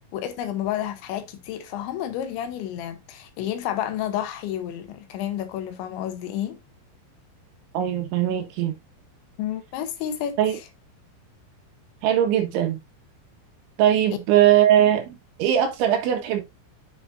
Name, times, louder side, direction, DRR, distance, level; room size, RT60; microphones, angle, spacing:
voice 1, 0.1-6.6 9.4-10.6, left 11 dB, 80° left, 3.3 m, -30 dB
voice 2, 7.7-8.8 10.4-10.6 12.0-12.8 13.8-16.4, right 11 dB, 80° right, 3.9 m, -20 dB
7.9 x 7.0 x 2.6 m
omnidirectional pair, 5.4 m